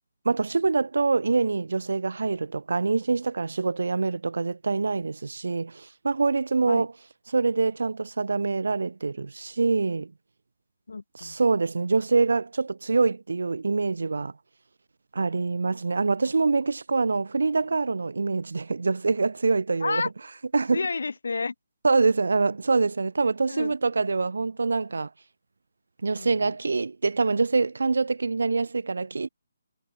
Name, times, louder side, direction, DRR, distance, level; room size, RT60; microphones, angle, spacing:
voice 1, 0.2-6.9 7.3-10.1 11.2-14.3 15.1-20.0 20.5-20.8 21.8-25.1 26.0-29.3, right 4 dB, 75° right, 0.8 m, -25 dB
voice 2, 10.9-11.4 19.8-20.1 20.7-21.5 23.5-23.7 26.2-26.6, left 4 dB, 70° left, 3.5 m, -31 dB
hypercardioid pair, 180°, 0 cm